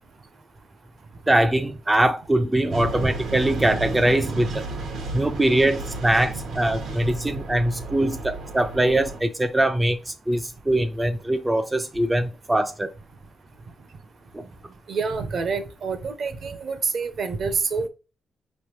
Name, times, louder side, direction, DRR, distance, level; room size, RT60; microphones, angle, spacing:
voice 1, 1.3-4.6 5.1-12.9 14.3-14.5, right 1 dB, 10° right, 0.3 m, -22 dB
sound 1, 2.7-9.2, right 3 dB, 80° right, 1.1 m, -33 dB
voice 2, 14.9-17.9, right 4 dB, 50° right, 0.7 m, -27 dB
5.0 x 3.3 x 3.0 m
wide cardioid pair, 150°, 0 cm